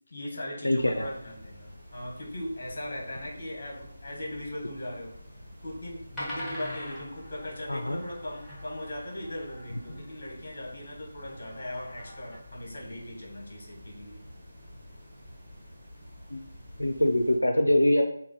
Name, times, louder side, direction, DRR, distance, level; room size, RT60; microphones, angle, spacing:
voice 1, 0.1-5.2 5.6-14.2, left 1 dB, 45° left, -2 dB, 1.3 m, -39 dB
voice 2, 0.6-1.1 7.7-8.0 16.3-16.4 16.8-18.0, left 1 dB, 90° left, 4 dB, 0.4 m, -23 dB
sound 1, 0.8-17.4, equal, 25° right, 1.2 m, -49 dB
sound 2, 5.3-5.4 5.8-5.9 6.2-10.6 11.3-12.4, left 1 dB, 10° left, 0.7 m, -43 dB
3.3 x 2.1 x 3.9 m, 0.72 s
figure-of-eight pair, 160°, 0 cm